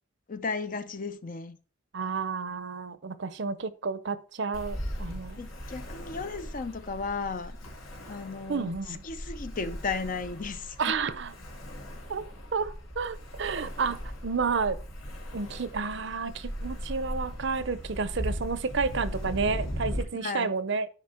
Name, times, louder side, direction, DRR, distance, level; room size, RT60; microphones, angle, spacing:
voice 1, 0.3-1.6 5.4-7.6 8.1-8.7 9.0-10.9 20.2-20.5, left 4 dB, 40° left, 0.5 m, -35 dB
voice 2, 1.9-5.4 8.5-9.0 10.8-11.3 12.1-12.2 12.5-14.0 14.2-14.8 15.3-20.9, right 4 dB, 60° right, 0.6 m, -31 dB
Ocean, 4.5-20.0, equal, 80° left, 2.9 m, -38 dB
9.7 x 5.1 x 4.4 m
head